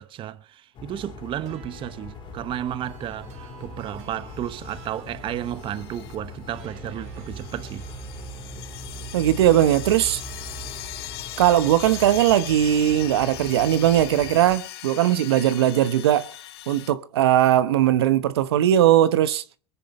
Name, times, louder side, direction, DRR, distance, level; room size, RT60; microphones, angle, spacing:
voice 1, 0.0-7.9, right 11 dB, 40° right, 1.1 m, -33 dB
sound 1, 0.7-14.6, left 3 dB, 40° left, 3.8 m, -42 dB
sound 2, 1.4-14.0, right 9 dB, 60° right, 3.6 m, -44 dB
sound 3, 4.4-4.9 5.4-6.2 6.5-6.7 7.2-16.9, left 14 dB, 80° left, 1.5 m, -39 dB
voice 2, 9.1-10.2 11.4-16.3 16.7-19.4, right 11 dB, 85° right, 1.1 m, -19 dB
22.5 x 10.5 x 4.3 m
hypercardioid pair, 105°, 13 cm